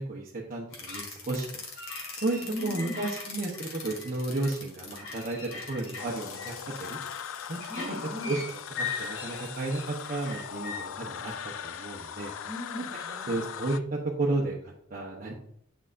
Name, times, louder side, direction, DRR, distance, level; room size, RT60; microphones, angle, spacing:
voice 1, 0.0-1.5 2.1-6.5 6.8-7.0 7.5-7.6 8.2-12.3 13.3-15.3, right 2 dB, 45° right, -4 dB, 0.9 m, -33 dB
sound 1, 0.7-10.8, left 4 dB, 85° left, 1.9 m, -40 dB
voice 2, 2.4-3.0 7.7-8.4 12.4-13.4, left 1 dB, 10° right, -5 dB, 2.3 m, -39 dB
sound 2, 6.0-13.8, left 8 dB, 70° left, 0.4 m, -39 dB
8.9 x 5.5 x 2.5 m, 0.68 s
head